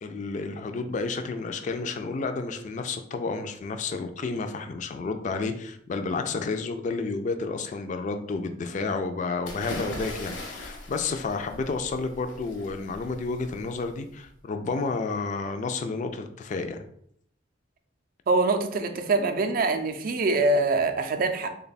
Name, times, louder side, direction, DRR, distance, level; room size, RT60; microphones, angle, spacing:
voice 1, 0.0-16.8, left 4 dB, 40° left, 7 dB, 0.3 m, -31 dB
sound 1, 9.4-14.3, left 2 dB, 85° left, 0.9 m, -40 dB
voice 2, 18.3-21.5, right 3 dB, 50° right, 7 dB, 0.4 m, -24 dB
3.4 x 2.2 x 4.0 m, 0.68 s
head